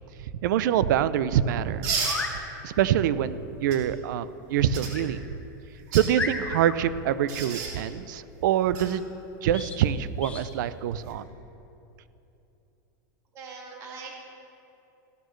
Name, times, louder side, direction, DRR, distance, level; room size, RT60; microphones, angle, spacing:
voice 1, 0.4-1.9 2.6-5.2 5.9-9.0 9.4-11.2, right 10 dB, 70° right, 15 dB, 0.5 m, -25 dB
sound 1, 1.8-2.2 3.7-3.8 4.7-4.9 5.8-6.1 7.3-7.7 8.7-8.9 10.9-11.1, right 5 dB, 50° right, 2.6 m, -30 dB
sound 2, 1.9-2.4 4.9-5.1 5.6-5.7 6.1-6.8 9.5-9.8 10.2-10.5, left 4 dB, 10° left, 0.9 m, -33 dB
voice 2, 13.3-14.2, right 4 dB, 30° right, -1 dB, 2.0 m, -41 dB
15.5 x 12.5 x 3.2 m, 2.9 s
supercardioid pair, 160°, 11 cm